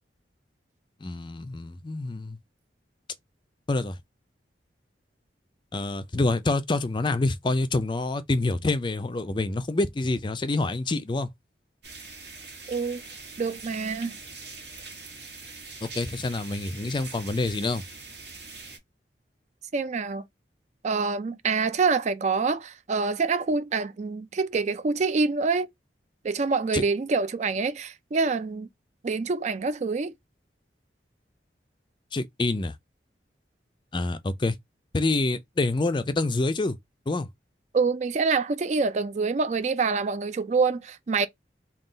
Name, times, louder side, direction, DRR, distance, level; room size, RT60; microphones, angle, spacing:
voice 1, 1.0-2.4 3.7-4.0 5.7-11.3 15.8-17.8 26.7-26.8 32.1-32.7 33.9-34.6 34.9-36.8 37.1-37.3, left 2 dB, 25° left, 0.4 m, -27 dB
sound 1, 11.8-18.8, right 4 dB, 75° right, 1.6 m, -43 dB
voice 2, 12.7-13.0 13.4-14.1 19.7-20.2 20.8-25.7 26.2-28.7 29.0-30.1 37.7-41.3, right 4 dB, 40° right, 0.4 m, -26 dB
3.8 x 2.3 x 3.9 m
head